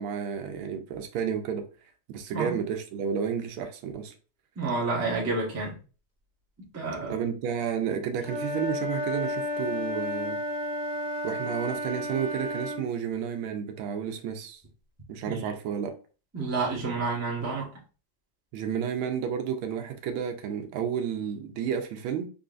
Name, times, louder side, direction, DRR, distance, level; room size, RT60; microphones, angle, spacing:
voice 1, 0.0-1.6 2.1-4.1 7.1-10.4 11.2-14.6 15.1-15.9 18.5-22.3, right 7 dB, 80° right, 1.4 m, -31 dB
voice 2, 4.6-5.7 6.7-7.1 15.3-15.4 16.3-17.7, right 3 dB, 15° right, 0.5 m, -29 dB
Wind instrument woodwind instrument, 8.2-12.9, left 1 dB, 5° left, 1.6 m, -32 dB
3.7 x 3.1 x 2.4 m
omnidirectional pair, 2.3 m